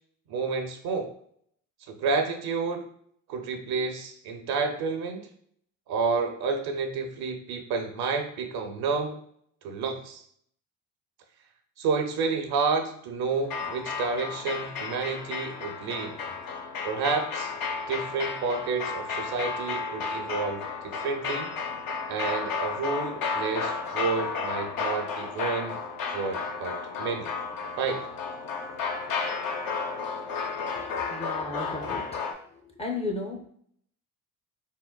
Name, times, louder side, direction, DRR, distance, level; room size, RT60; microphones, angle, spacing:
voice 1, 0.3-1.1 1.9-2.8 3.3-5.3 5.9-9.2 9.6-10.2 11.8-16.2 16.8-17.5 17.9-21.5 22.1-25.8 26.1-27.3 27.8-28.0, right 4 dB, 65° right, 5 dB, 0.6 m, -30 dB
sound 1, 13.4-32.3, left 5 dB, 60° left, 0.6 m, -33 dB
voice 2, 30.7-32.1 32.8-33.5, left 3 dB, 15° left, 1 dB, 0.5 m, -34 dB
3.6 x 2.1 x 2.2 m, 0.64 s
supercardioid pair, 70°, 41 cm